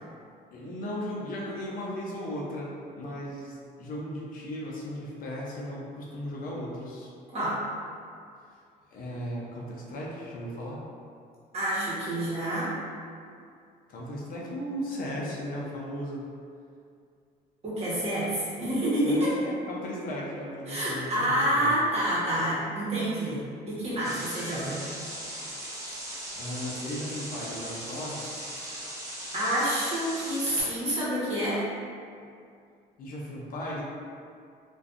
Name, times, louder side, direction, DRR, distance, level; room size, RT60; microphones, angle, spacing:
voice 1, 0.5-7.1 8.9-10.8 13.9-16.3 19.0-21.7 26.4-28.2 33.0-33.8, equal, 55° left, -4 dB, 0.5 m, -36 dB
voice 2, 7.3-7.6 11.5-12.7 17.6-19.3 20.7-24.8 29.3-31.6, right 1 dB, 40° right, -9 dB, 1.0 m, -28 dB
sound 1, 24.0-30.6, right 1 dB, 20° right, 0.7 m, -39 dB
2.5 x 2.2 x 2.4 m, 2.4 s
cardioid pair, 110°, 17 cm